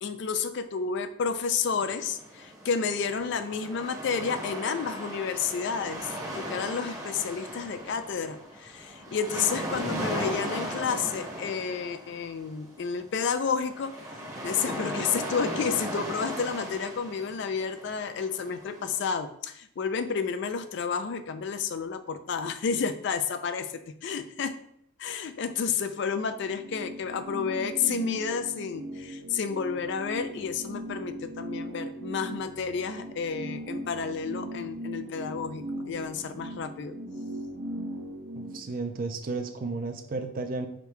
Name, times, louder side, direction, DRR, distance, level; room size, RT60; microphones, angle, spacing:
voice 1, 0.0-13.9 14.4-24.5 25.0-37.0, left 6 dB, 55° left, 10 dB, 0.3 m, -31 dB
sound 1, 1.8-19.0, equal, 15° right, 0.8 m, -37 dB
sound 2, 26.1-38.6, right 1 dB, 85° right, 0.8 m, -39 dB
voice 2, 38.3-40.7, right 3 dB, 40° right, 7 dB, 0.4 m, -33 dB
5.0 x 2.2 x 4.5 m, 0.71 s
head